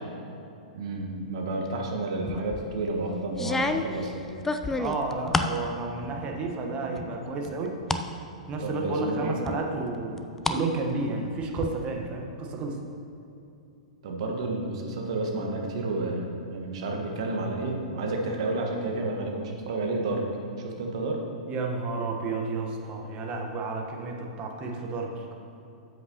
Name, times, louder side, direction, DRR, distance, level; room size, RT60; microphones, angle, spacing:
voice 1, 0.7-4.1 8.6-9.4 14.0-20.2 20.6-21.2, right 2 dB, 55° right, 0 dB, 1.5 m, -30 dB
sound 1, 2.3-2.7 3.3-5.6 6.0-6.6 7.0-8.1 8.5-8.6 9.5-10.6 10.9-11.7, left 3 dB, 10° left, 0.4 m, -30 dB
voice 2, 4.8-7.8 8.5-12.8 21.5-25.1, right 3 dB, 30° right, 1 dB, 1.2 m, -31 dB
13.0 x 7.8 x 2.9 m, 2.7 s
figure-of-eight pair, 105°, 4 cm